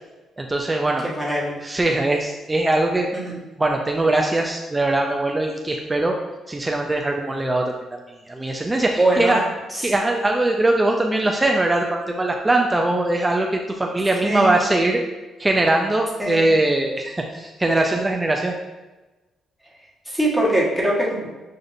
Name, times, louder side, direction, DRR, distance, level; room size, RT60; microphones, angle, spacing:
voice 1, 0.4-1.0 1.6-6.2 6.5-8.0 8.3-9.4 9.8-15.0 15.4-18.5, right 2 dB, 15° right, 2 dB, 0.4 m, -21 dB
voice 2, 1.0-1.6 3.1-3.3 9.0-9.4 9.7-9.9 14.2-14.5 16.2-16.4 20.1-21.3, right 1 dB, ahead, -5 dB, 1.2 m, -22 dB
6.3 x 2.5 x 2.5 m, 1.2 s
cardioid pair, 90°, 0 cm